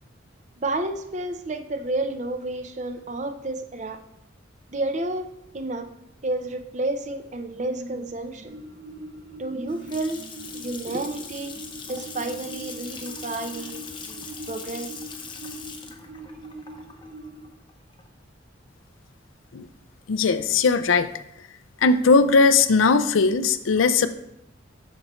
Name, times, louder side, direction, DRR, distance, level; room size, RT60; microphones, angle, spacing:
voice 1, 0.6-4.0 4.7-5.3 5.5-5.9 6.2-8.5 9.4-15.0, right 2 dB, 35° right, 7 dB, 0.6 m, -31 dB
sound 1, 8.4-17.5, right 1 dB, 65° right, 2.0 m, -42 dB
Water tap faucet / Sink (filling or washing) / Splash splatter, 9.7-18.3, left 5 dB, 25° left, 0.7 m, -41 dB
voice 2, 20.1-21.1 21.8-24.1, left 4 dB, 85° left, 12 dB, 0.5 m, -19 dB
12.0 x 4.4 x 3.1 m, 0.82 s
head